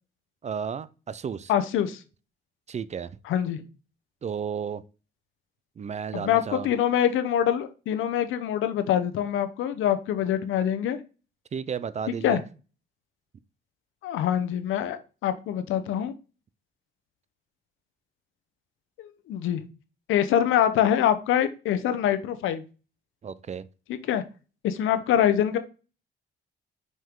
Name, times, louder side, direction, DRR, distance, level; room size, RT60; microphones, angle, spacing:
voice 1, 0.4-1.5 2.7-3.2 4.2-4.8 5.8-6.7 11.5-12.4 23.2-23.7, right 7 dB, 35° right, 0.5 m, -33 dB
voice 2, 1.5-2.0 3.2-3.6 6.1-11.0 12.2-12.4 14.0-16.1 19.0-19.6 20.1-22.6 23.9-24.2 24.6-25.6, left 10 dB, 85° left, 0.9 m, -24 dB
5.5 x 5.5 x 3.6 m
cardioid pair, 90°, 20 cm